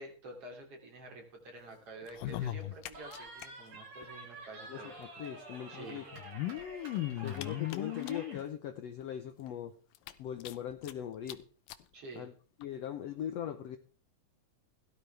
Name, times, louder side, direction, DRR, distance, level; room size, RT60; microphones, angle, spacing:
voice 1, 0.0-4.9 5.7-6.0 11.9-12.3, right 2 dB, 45° right, 2 dB, 3.7 m, -48 dB
sound 1, 2.0-3.5 3.7-3.8 4.0-4.1 5.2-5.3 6.1-8.4 9.0-9.1 9.5-9.6 10.0-10.9 11.3-11.4 11.7-11.8 12.6-12.7, left 14 dB, 90° left, 2.6 m, -38 dB
Cheering, 2.9-8.5, right 2 dB, 70° right, 6.2 m, -49 dB
voice 2, 4.7-6.1 7.2-9.8 10.2-11.4 12.2-12.3 12.6-13.8, left 9 dB, 70° left, 8 dB, 1.6 m, -40 dB
17.0 x 12.5 x 3.4 m, 0.40 s
omnidirectional pair, 3.9 m